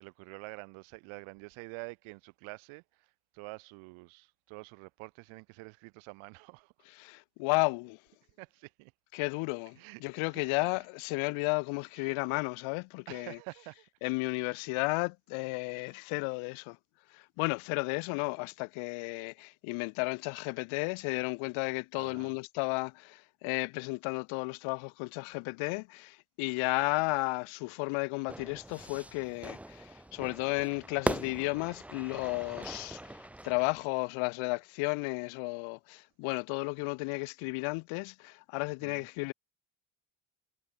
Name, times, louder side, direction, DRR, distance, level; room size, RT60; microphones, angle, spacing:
voice 1, 0.0-6.7 8.4-8.9 9.7-10.9 12.0-12.2 13.1-13.9 14.4-14.6 15.8-16.0 21.9-22.4 38.8-39.1, right 30 dB, 85° right, 1.2 m, -48 dB
voice 2, 7.0-8.0 9.1-13.4 14.0-16.8 17.1-39.3, left 29 dB, 80° left, 0.6 m, -33 dB
Fire / Fireworks, 28.3-33.9, right 1 dB, 5° right, 0.4 m, -40 dB
cardioid pair, 105°, 48 cm